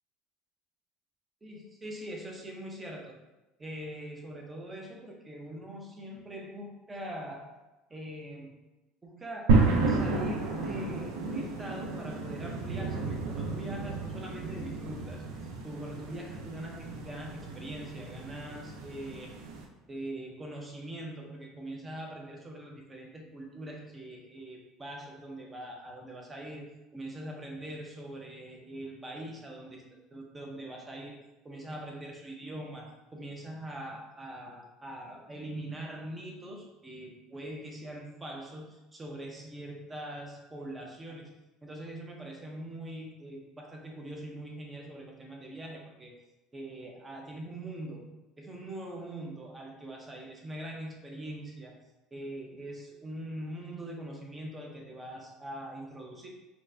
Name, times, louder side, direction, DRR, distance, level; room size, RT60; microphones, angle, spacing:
voice 1, 1.4-3.1 3.6-7.6 7.9-8.6 9.0-19.3 19.9-29.8 30.1-31.2 31.4-41.3 41.6-46.1 46.5-48.1 48.4-51.8 52.1-56.3, right 1 dB, 15° right, 0 dB, 0.6 m, -42 dB
sound 1, 9.5-19.7, right 3 dB, 85° right, 0.5 m, -31 dB
4.3 x 2.1 x 2.6 m, 1.0 s
cardioid pair, 150°, 0 cm